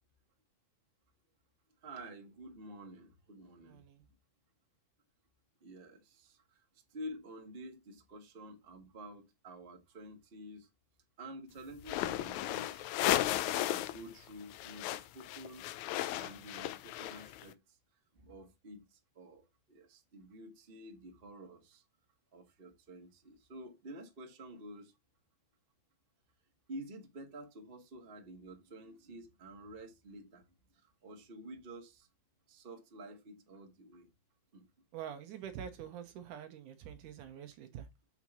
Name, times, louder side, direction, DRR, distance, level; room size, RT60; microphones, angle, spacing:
voice 1, 1.8-3.8 5.6-6.6 6.9-10.7 11.2-12.9 13.3-15.7 16.2-17.8 18.1-21.8 22.3-24.9 26.7-30.4 30.7-32.1 32.5-34.1 34.5-34.7, right 1 dB, 25° right, 1.2 m, -50 dB
voice 2, 3.6-4.0 34.9-37.9, right 9 dB, 75° right, 2.4 m, -46 dB
sound 1, 11.8-14.0 14.3-17.4, left 14 dB, 80° left, 1.7 m, -35 dB
7.2 x 5.1 x 4.3 m
omnidirectional pair, 3.8 m